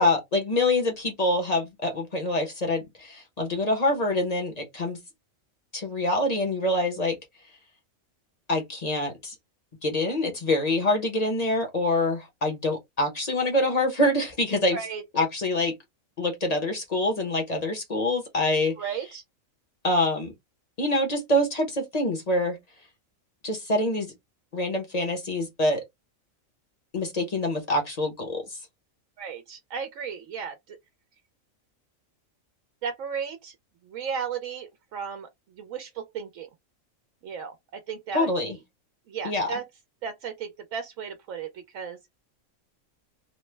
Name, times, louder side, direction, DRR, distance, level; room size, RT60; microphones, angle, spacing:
voice 1, 0.0-5.0 5.7-7.2 8.5-9.3 9.8-14.8 15.1-15.7 16.2-18.8 19.8-20.3 20.8-22.6 23.4-24.1 24.5-25.8 26.9-28.6 38.1-38.6 39.2-39.5, left 1 dB, 35° left, 0.7 m, -25 dB
voice 2, 14.7-15.2 18.8-19.2 29.2-30.8 32.8-33.5 33.9-35.3 35.6-36.5 37.2-38.6 39.1-39.7 40.0-42.0, right 6 dB, 80° right, 1.0 m, -35 dB
3.0 x 2.0 x 3.2 m
omnidirectional pair, 1.4 m